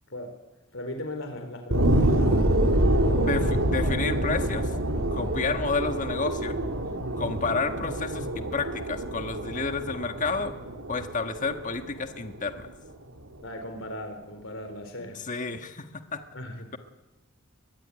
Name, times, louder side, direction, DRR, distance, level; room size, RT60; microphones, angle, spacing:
voice 1, 0.7-3.2 13.4-15.2 16.3-16.7, left 1 dB, 65° left, 6 dB, 4.0 m, -38 dB
sound 1, 1.7-12.7 13.2-13.3, right 1 dB, 80° right, 3.4 m, -26 dB
voice 2, 3.1-4.7 5.1-6.6 7.2-10.5 10.9-12.6 15.0-15.9 16.1-16.2, left 4 dB, 40° left, 7 dB, 1.6 m, -30 dB
22.5 x 21.0 x 9.8 m, 1.1 s
head